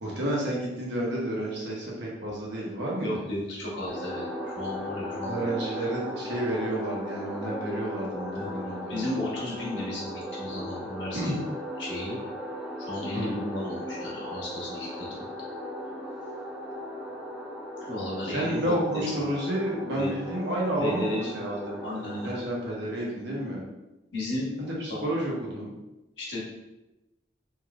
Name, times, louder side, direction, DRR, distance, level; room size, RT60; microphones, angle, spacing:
voice 1, 0.0-3.1 5.3-9.3 11.1-11.3 13.1-13.3 18.2-21.8 22.2-23.6 24.6-25.7, right 1 dB, 75° right, -4 dB, 0.9 m, -30 dB
voice 2, 3.0-5.5 8.3-8.5 8.9-11.4 11.8-12.2 12.8-15.2 17.8-19.3 20.0-20.1 20.8-21.4 21.8-22.3 24.1-24.5 24.9-25.0 26.2-26.4, left 1 dB, 80° left, -5 dB, 1.0 m, -34 dB
sound 1, 3.9-22.4, equal, ahead, 0.4 m, -37 dB
3.3 x 2.8 x 2.4 m, 1.0 s
head